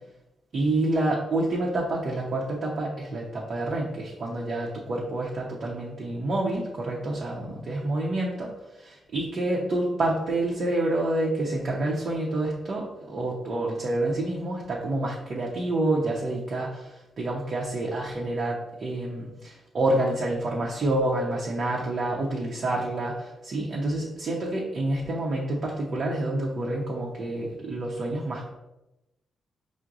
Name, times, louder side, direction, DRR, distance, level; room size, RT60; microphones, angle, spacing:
voice 1, 0.5-8.5 8.8-28.5, right 2 dB, 55° right, -3 dB, 0.8 m, -28 dB
4.6 x 2.1 x 3.7 m, 0.95 s
supercardioid pair, 50°, 0 cm